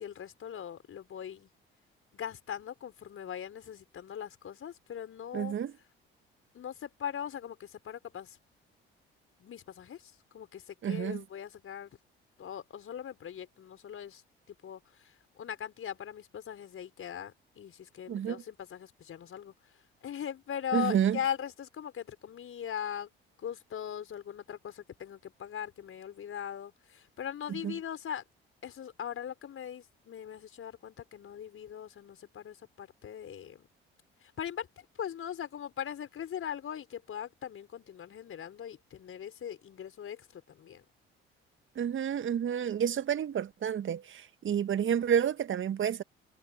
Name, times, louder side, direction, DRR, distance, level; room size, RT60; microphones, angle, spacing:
voice 1, 0.0-1.5 2.1-5.5 6.5-8.4 9.4-12.0 12.4-14.2 14.5-19.5 20.0-23.1 23.4-28.2 28.6-33.7 34.2-40.8, left 9 dB, 45° left, 5.2 m, -40 dB
voice 2, 5.3-5.7 10.8-11.2 18.1-18.4 20.7-21.2 27.5-27.7 41.8-46.0, right 9 dB, 40° right, 1.8 m, -30 dB
figure-of-eight pair, 50°, 29 cm